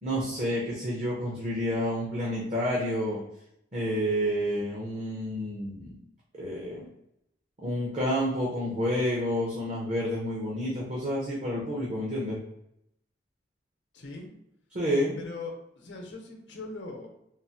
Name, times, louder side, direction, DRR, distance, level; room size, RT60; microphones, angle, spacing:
voice 1, 0.0-3.2 3.7-6.0 6.4-6.9 7.6-12.4 14.7-15.2, equal, 40° right, -5 dB, 0.7 m, -29 dB
voice 2, 13.9-14.3 15.2-17.1, left 3 dB, 80° left, 1 dB, 0.8 m, -40 dB
3.7 x 2.0 x 2.8 m, 0.78 s
head